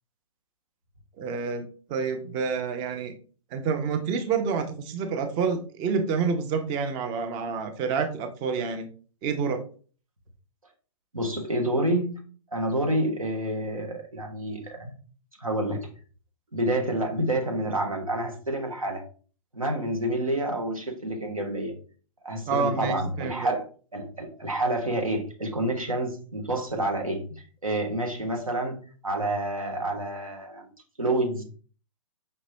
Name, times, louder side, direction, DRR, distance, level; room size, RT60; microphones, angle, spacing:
voice 1, 1.2-3.1 3.5-8.9 9.2-9.6 22.5-23.5, right 5 dB, 25° right, 6 dB, 0.6 m, -28 dB
voice 2, 11.1-12.2 12.5-14.9 15.4-15.8 16.5-19.0 19.5-21.7 22.2-23.6 23.9-27.2 27.6-30.7 31.0-31.4, right 1 dB, 85° right, 2 dB, 1.2 m, -28 dB
5.3 x 2.9 x 2.7 m, 0.40 s
figure-of-eight pair, 115°, 17 cm